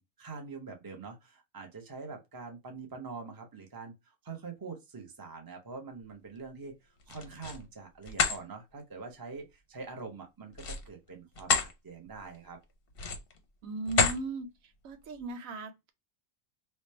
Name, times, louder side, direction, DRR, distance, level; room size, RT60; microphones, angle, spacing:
voice 1, 0.0-6.7 7.1-12.6, right 4 dB, 20° right, 0.7 m, -44 dB
sound 1, 7.0-7.6 8.0-8.4 10.5-11.7 12.2-12.4 12.9-13.4 13.9-14.2, left 5 dB, 50° left, 0.8 m, -29 dB
voice 2, 13.6-14.5 14.8-15.9, right 3 dB, 70° right, 1.1 m, -37 dB
3.3 x 2.3 x 4.1 m
omnidirectional pair, 1.5 m